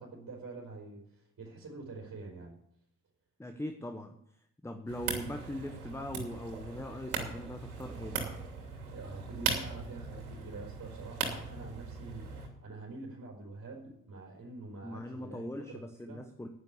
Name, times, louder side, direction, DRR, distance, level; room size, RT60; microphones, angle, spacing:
voice 1, 0.0-2.6 8.9-16.2, right 3 dB, 35° right, -3 dB, 4.4 m, -46 dB
voice 2, 3.4-4.2 4.6-8.3 14.8-16.5, left 1 dB, 5° left, 6 dB, 1.2 m, -41 dB
sound 1, 4.9-12.5, right 5 dB, 70° right, 2.8 m, -39 dB
10.5 x 10.0 x 7.2 m, 0.73 s
figure-of-eight pair, 50°, 44 cm